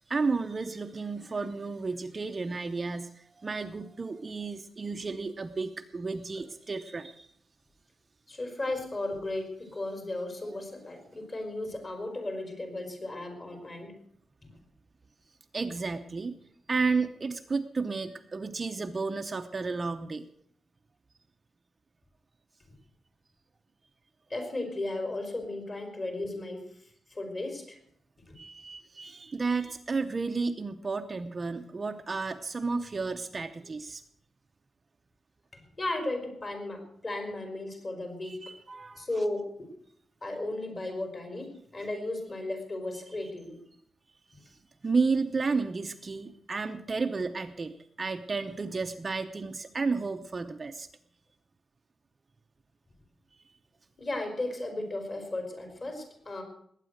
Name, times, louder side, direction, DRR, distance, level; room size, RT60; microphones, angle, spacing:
voice 1, 0.1-7.3 15.5-16.4 16.7-20.2 28.4-34.0 38.3-39.2 44.4-44.6 44.8-50.9, right 4 dB, 30° right, 6 dB, 0.7 m, -32 dB
voice 2, 8.3-13.9 14.4-14.5 24.3-26.6 27.1-27.8 28.3-28.4 35.5-38.5 39.0-39.7 40.2-43.6 54.0-56.4, left 2 dB, 30° left, 4 dB, 4.3 m, -35 dB
20.0 x 9.1 x 6.5 m, 0.67 s
wide cardioid pair, 145°, 0 cm